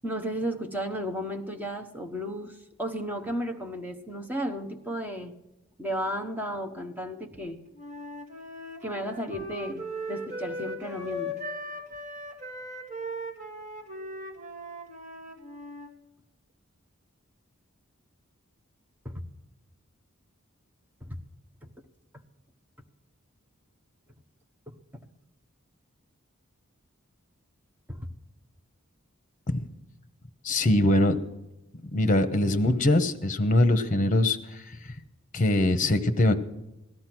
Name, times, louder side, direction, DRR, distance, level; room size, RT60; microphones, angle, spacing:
voice 1, 0.0-5.3 5.8-7.6 8.8-11.4 19.0-19.2 21.0-21.2 24.7-24.8 27.9-28.1, equal, 10° right, 4 dB, 1.1 m, -34 dB
Wind instrument woodwind instrument, 7.7-15.9, equal, 35° right, 2.0 m, -38 dB
voice 2, 30.4-31.2 31.9-34.9 35.3-36.3, left 1 dB, 40° left, 10 dB, 1.1 m, -23 dB
17.0 x 12.0 x 6.1 m, 0.96 s
head